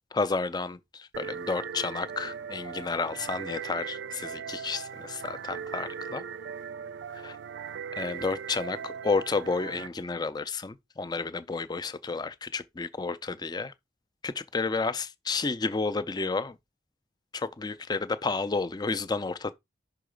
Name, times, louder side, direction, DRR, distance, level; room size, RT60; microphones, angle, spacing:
voice 1, 0.1-6.2 7.1-7.4 8.0-13.7 14.2-16.6 17.3-19.5, left 4 dB, 20° left, 0.4 m, -31 dB
sound 1, 1.1-9.9, right 7 dB, 70° right, 0.3 m, -39 dB
5.7 x 3.8 x 5.0 m
head